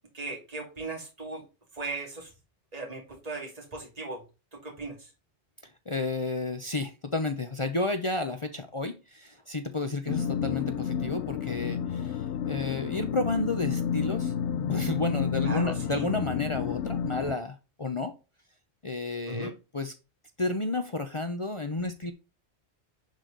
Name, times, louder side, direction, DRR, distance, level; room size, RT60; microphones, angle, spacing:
voice 1, 0.1-1.4 1.7-2.3 2.7-4.2 4.5-5.1 15.4-16.1 19.3-19.5, right 3 dB, 35° right, 2.6 m, -38 dB
voice 2, 5.9-18.1 18.8-19.9 20.4-22.1, left 2 dB, 30° left, 0.8 m, -31 dB
sound 1, 10.1-17.3, left 8 dB, 90° left, 0.9 m, -30 dB
10.5 x 4.9 x 3.9 m
omnidirectional pair, 1.1 m